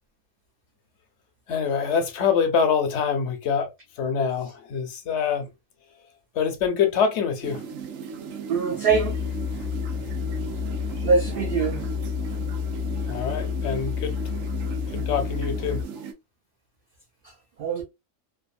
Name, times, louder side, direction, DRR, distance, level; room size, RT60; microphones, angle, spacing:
voice 1, 1.5-3.7 4.0-5.5 6.3-7.6 13.1-14.2 14.9-15.8, left 6 dB, 65° left, 0.9 m, -25 dB
sound 1, 7.4-16.1, right 6 dB, 85° right, 1.0 m, -36 dB
voice 2, 8.5-9.2 11.0-11.9 17.6-17.8, right 4 dB, 60° right, 0.6 m, -23 dB
sound 2, 8.9-15.8, left 8 dB, 40° left, 0.6 m, -30 dB
2.7 x 2.4 x 2.3 m
omnidirectional pair, 1.3 m